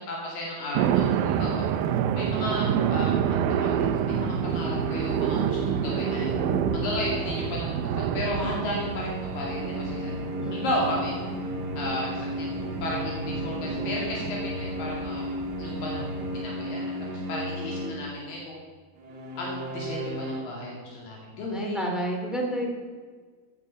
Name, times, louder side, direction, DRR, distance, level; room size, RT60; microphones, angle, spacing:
voice 1, 0.1-1.6 2.1-6.3 6.7-10.1 10.5-11.2 11.8-18.6 19.4-21.8, left 1 dB, 75° left, -3 dB, 4.1 m, -34 dB
sound 1, 0.7-16.4, right 9 dB, 90° right, 2.5 m, -29 dB
sound 2, 2.3-7.6 8.4-18.2 19.0-20.4, right 1 dB, 50° right, 2.6 m, -34 dB
voice 2, 8.5-8.8 10.4-10.7 21.5-22.7, right 1 dB, ahead, 0 dB, 1.8 m, -31 dB
14.0 x 10.5 x 5.9 m, 1.5 s
omnidirectional pair, 4.0 m